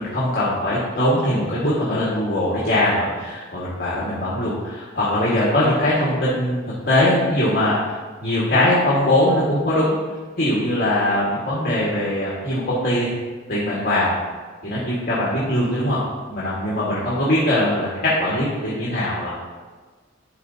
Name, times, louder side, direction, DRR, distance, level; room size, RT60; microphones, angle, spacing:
voice 1, 0.0-7.8 8.2-9.9 10.4-13.1 13.5-14.1 14.6-16.0 16.3-17.9 18.2-19.3, left 1 dB, 50° left, -8 dB, 1.5 m, -21 dB
11.5 x 4.0 x 2.7 m, 1.4 s
head